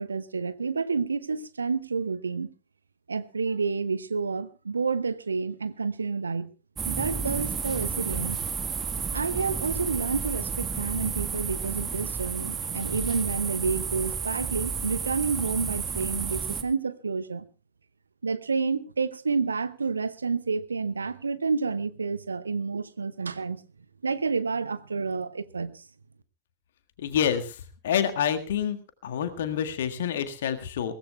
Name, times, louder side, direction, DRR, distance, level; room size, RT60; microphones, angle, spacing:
voice 1, 0.0-2.5 3.1-6.5 6.9-8.4 9.1-17.4 18.2-23.6 24.0-25.8, right 4 dB, 75° right, 14 dB, 0.9 m, -29 dB
suburban park crickets birds summer airplane insects, 6.8-16.6, right 6 dB, 20° right, 1.6 m, -31 dB
voice 2, 27.0-28.8 29.0-31.0, left 8 dB, 60° left, 8 dB, 1.7 m, -28 dB
22.5 x 17.5 x 2.3 m, 0.31 s
figure-of-eight pair, 90°, 0 cm